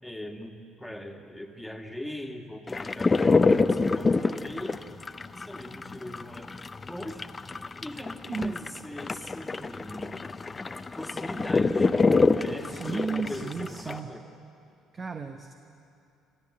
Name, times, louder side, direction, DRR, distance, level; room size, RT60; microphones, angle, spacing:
voice 1, 0.0-4.8 5.3-7.3 7.8-10.2 11.0-11.9 12.3-14.2, left 1 dB, 5° left, 3 dB, 2.1 m, -41 dB
sound 1, 2.7-14.0, left 3 dB, 25° left, 0.7 m, -26 dB
voice 2, 12.7-14.1 14.9-15.5, right 4 dB, 35° right, 7 dB, 1.1 m, -33 dB
25.5 x 15.0 x 7.6 m, 2.6 s
figure-of-eight pair, 50°, 0 cm